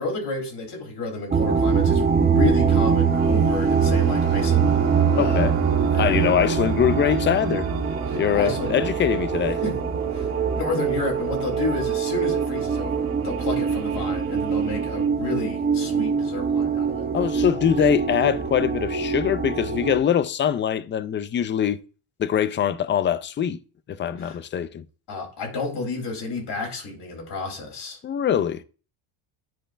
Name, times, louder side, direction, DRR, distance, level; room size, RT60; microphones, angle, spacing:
voice 1, 0.0-4.7 5.1-5.5 5.9-6.4 8.1-8.8 9.6-9.8 10.1-17.1 17.8-17.9 24.2-24.4 25.1-28.0, left 2 dB, 55° left, 3.3 m, -31 dB
sound 1, 1.3-20.0, right 6 dB, 20° right, 1.0 m, -23 dB
sound 2, 3.1-15.1, right 7 dB, 85° right, 1.7 m, -36 dB
voice 2, 5.2-5.6 5.9-7.7 8.1-9.6 17.1-21.8 22.2-23.6 23.9-24.8 28.0-28.6, left 9 dB, 25° left, 0.3 m, -23 dB
10.0 x 5.0 x 2.5 m
cardioid pair, 110°, 50 cm